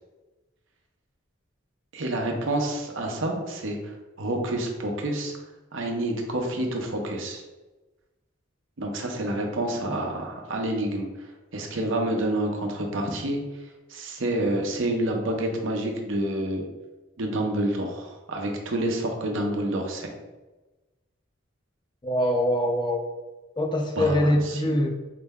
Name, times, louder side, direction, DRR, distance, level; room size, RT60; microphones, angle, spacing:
voice 1, 1.9-5.3 5.7-7.4 8.8-11.3 11.5-13.4 13.9-16.6 17.2-20.1 24.0-24.8, right 1 dB, 75° right, 2 dB, 0.7 m, -28 dB
voice 2, 22.0-23.1 23.6-24.9, left 1 dB, 25° left, 3 dB, 0.4 m, -23 dB
4.9 x 2.1 x 3.5 m, 1.1 s
head